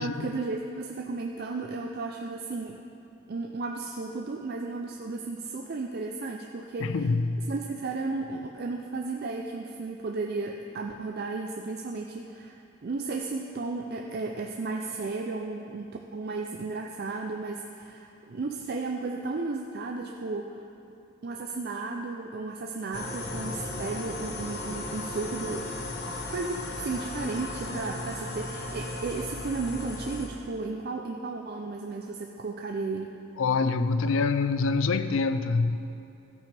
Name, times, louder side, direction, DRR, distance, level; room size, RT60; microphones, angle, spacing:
voice 1, 0.0-2.8 3.3-7.1 7.5-20.7 21.2-25.8 26.1-33.1, right 3 dB, 45° right, 2 dB, 0.4 m, -34 dB
voice 2, 6.8-7.5 33.4-35.8, left 4 dB, 65° left, 11 dB, 0.4 m, -25 dB
sound 1, 22.9-30.3, left 2 dB, 50° left, 1.0 m, -36 dB
13.5 x 8.3 x 3.3 m, 2.8 s
head